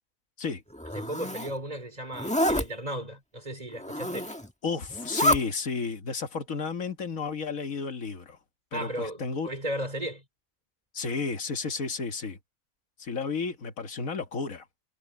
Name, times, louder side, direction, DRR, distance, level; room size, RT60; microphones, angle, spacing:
Zipper (clothing), 0.7-1.5 2.1-2.6 3.7-4.5 4.9-5.4, left 1 dB, 5° left, 1.4 m, -27 dB
voice 1, 0.9-4.3 8.7-10.2, right 1 dB, 30° right, 4.0 m, -35 dB
voice 2, 4.6-8.4 8.7-9.5 10.9-12.4 13.0-14.7, left 4 dB, 75° left, 2.0 m, -32 dB
omnidirectional pair, 1.4 m